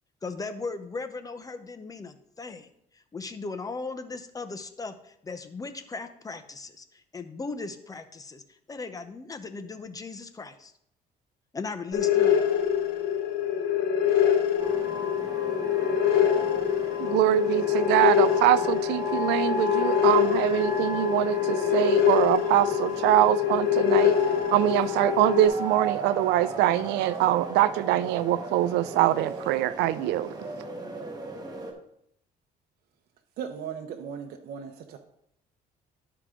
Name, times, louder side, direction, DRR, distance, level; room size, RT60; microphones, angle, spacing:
voice 1, 0.2-2.7 2.9-10.7 11.5-12.4, left 3 dB, 20° left, 9 dB, 0.8 m, -38 dB
sound 1, 11.9-25.5, left 9 dB, 80° left, 1.3 m, -25 dB
sound 2, 14.6-31.7, equal, 25° right, 1.4 m, -36 dB
voice 2, 17.0-24.1 24.5-30.3, right 14 dB, 90° right, 16 dB, 0.4 m, -24 dB
voice 3, 33.4-35.0, right 7 dB, 65° right, 4 dB, 0.8 m, -37 dB
11.5 x 4.7 x 3.8 m, 0.74 s
cardioid pair, 110°, 17 cm